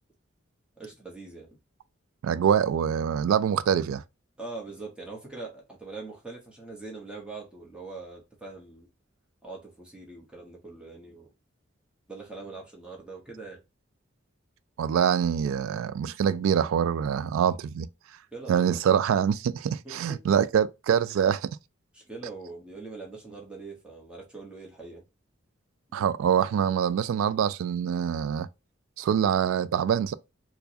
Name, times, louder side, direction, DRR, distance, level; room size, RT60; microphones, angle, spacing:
voice 1, 0.8-1.5 4.4-8.9 9.4-11.3 12.1-13.6 18.3-18.8 19.8-20.2 21.9-25.0, right 3 dB, 5° right, 0.9 m, -42 dB
voice 2, 2.2-4.0 14.8-17.9 18.5-21.5 25.9-28.5 29.0-30.1, right 8 dB, 90° right, 0.3 m, -25 dB
4.5 x 2.2 x 2.6 m
head